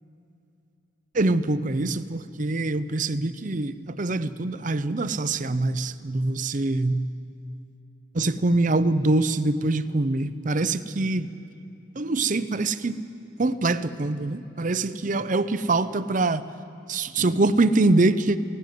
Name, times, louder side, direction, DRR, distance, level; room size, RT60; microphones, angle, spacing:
voice 1, 1.1-7.1 8.1-11.3 12.0-13.0 13.4-16.4 16.9-18.4, right 2 dB, 40° right, 13 dB, 0.6 m, -24 dB
18.0 x 17.0 x 9.4 m, 2.8 s
head